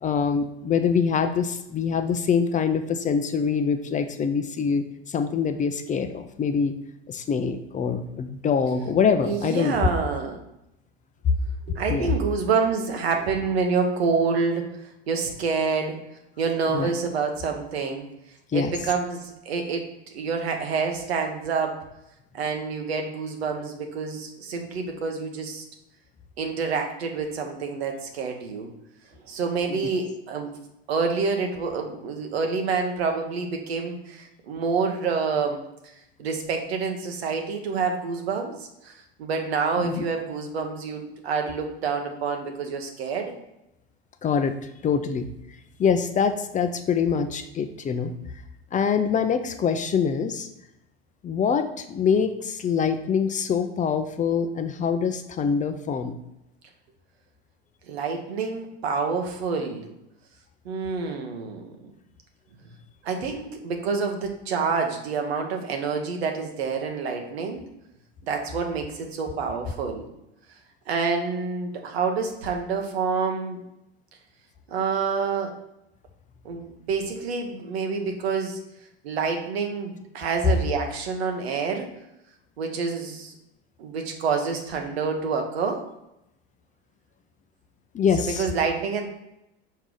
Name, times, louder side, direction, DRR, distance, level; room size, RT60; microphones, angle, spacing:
voice 1, 0.0-6.8 7.1-9.8 11.2-11.3 11.9-12.1 16.7-16.9 18.5-18.7 29.7-29.8 39.8-40.0 44.2-44.6 44.8-45.3 45.8-48.1 48.7-50.5 51.2-56.2 87.9-88.4, left 6 dB, 25° left, 8 dB, 0.5 m, -24 dB
voice 2, 9.2-10.4 11.7-14.7 15.1-16.0 16.4-18.1 18.5-19.9 20.1-21.8 22.3-25.6 26.4-28.7 29.3-30.5 30.9-35.7 36.2-38.6 38.8-43.4 57.9-59.9 60.6-61.9 63.0-67.6 68.2-70.1 70.9-73.6 74.7-75.5 76.4-78.6 79.0-81.9 82.6-83.3 83.8-85.8 88.4-89.1, right 5 dB, 85° right, 4 dB, 1.2 m, -27 dB
5.4 x 4.7 x 3.9 m, 0.86 s
hypercardioid pair, 95°, 31 cm